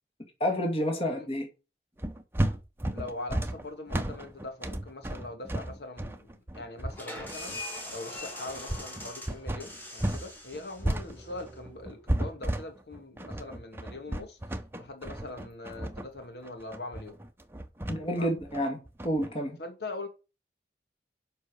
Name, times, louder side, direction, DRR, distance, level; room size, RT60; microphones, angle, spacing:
voice 1, 0.4-1.5 17.9-19.6, equal, 35° left, 2.2 m, -29 dB
voice 2, 0.9-1.3 2.9-17.2 18.1-18.4 19.6-20.1, left 2 dB, 75° left, 2.1 m, -42 dB
sound 1, 2.0-10.3 10.5-19.3, right 1 dB, 15° right, 0.8 m, -33 dB
sound 2, 6.9-12.4, left 1 dB, 10° left, 2.4 m, -43 dB
7.9 x 5.6 x 6.5 m
head